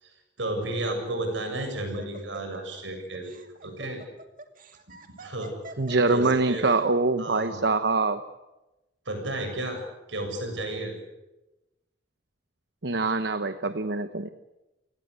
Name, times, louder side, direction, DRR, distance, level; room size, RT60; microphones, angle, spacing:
voice 1, 0.0-3.3 3.6-4.0 5.2-5.5 6.1-6.7 7.2-7.7 9.1-9.8 10.1-10.9, right 1 dB, 80° right, 5 dB, 7.7 m, -32 dB
Laughter, 1.3-6.7, right 2 dB, 45° right, 2.3 m, -46 dB
voice 2, 5.8-8.2 12.8-14.3, right 3 dB, 65° right, 10 dB, 1.0 m, -24 dB
29.5 x 18.5 x 8.4 m, 1.0 s
head